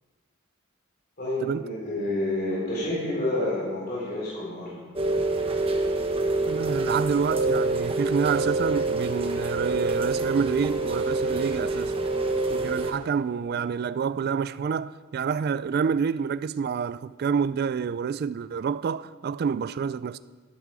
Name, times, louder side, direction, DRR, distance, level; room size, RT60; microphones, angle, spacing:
voice 1, 1.2-4.8, left 1 dB, 45° left, 4.2 m, -29 dB
Rain, 5.0-12.9, right 2 dB, 25° right, 1.1 m, -26 dB
voice 2, 6.5-11.9 12.5-20.2, right 6 dB, 45° right, 0.3 m, -28 dB
12.5 x 11.5 x 4.9 m
head